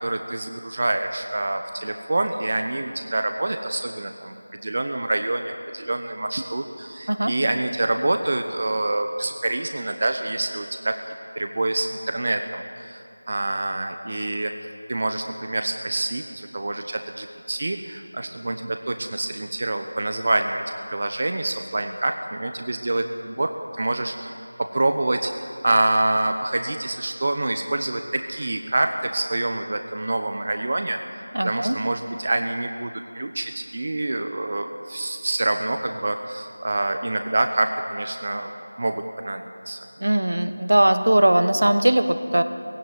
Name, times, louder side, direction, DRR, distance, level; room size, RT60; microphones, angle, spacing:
voice 1, 0.0-14.5 14.9-20.6 20.9-25.3 25.6-31.0 31.4-39.8, right 2 dB, 40° right, 6 dB, 0.9 m, -26 dB
voice 2, 31.3-31.8 40.0-42.4, right 1 dB, 60° right, 10 dB, 1.1 m, -19 dB
17.0 x 16.5 x 9.4 m, 2.6 s
figure-of-eight pair, 170°, 0 cm